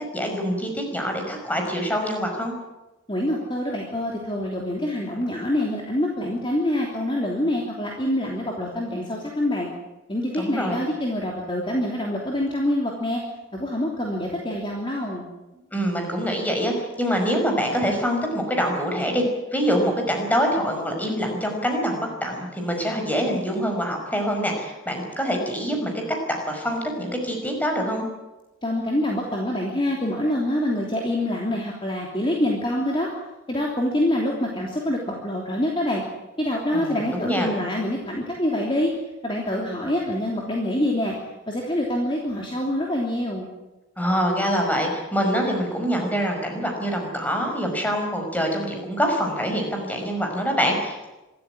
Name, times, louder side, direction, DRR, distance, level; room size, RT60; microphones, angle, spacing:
voice 1, 0.1-2.5 10.4-10.8 15.7-19.2 19.5-26.0 26.3-28.1 36.7-37.5 44.0-51.1, equal, 10° left, 2 dB, 5.3 m, -25 dB
voice 2, 3.1-9.7 10.1-13.2 13.5-15.3 28.6-33.1 33.5-36.0 36.4-38.9 39.2-41.2 41.5-43.5, left 1 dB, 25° left, -1 dB, 3.2 m, -25 dB
25.5 x 14.0 x 10.0 m, 1.1 s
head